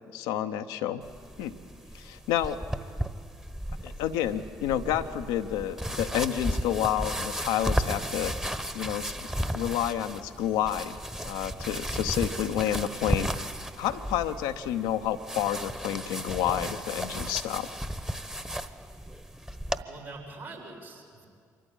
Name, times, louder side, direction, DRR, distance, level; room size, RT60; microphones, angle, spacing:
voice 1, 0.1-1.0 1.4-1.6 1.9-2.6 3.8-8.3 8.7-13.3 13.8-17.7, left 11 dB, 75° left, 8 dB, 0.8 m, -30 dB
sound 1, 1.0-19.8, equal, 5° right, 1.2 m, -34 dB
voice 2, 19.8-21.3, right 2 dB, 75° right, -4 dB, 5.2 m, -44 dB
25.0 x 14.0 x 8.8 m, 2.2 s
hypercardioid pair, 45°, 8 cm